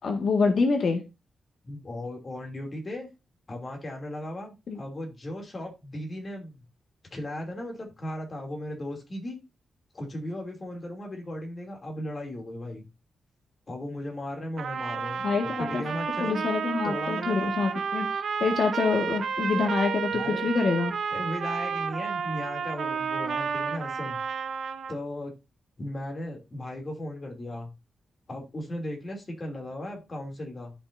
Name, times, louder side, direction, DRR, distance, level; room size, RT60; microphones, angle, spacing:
voice 1, 0.0-1.0 4.7-4.8 15.2-15.8 16.2-20.9, left 4 dB, 60° left, 3 dB, 1.7 m, -26 dB
voice 2, 1.6-3.1 3.5-6.7 7.1-9.4 9.9-12.8 13.7-15.3 15.6-16.5 16.8-17.6 20.1-20.5 21.1-24.2 24.9-25.3 25.8-27.7 28.3-30.7, left 1 dB, 30° left, 2 dB, 2.7 m, -36 dB
Trumpet, 14.6-25.0, right 6 dB, 70° right, 0.7 m, -31 dB
14.0 x 5.6 x 2.6 m, 0.25 s
wide cardioid pair, 135°, 0 cm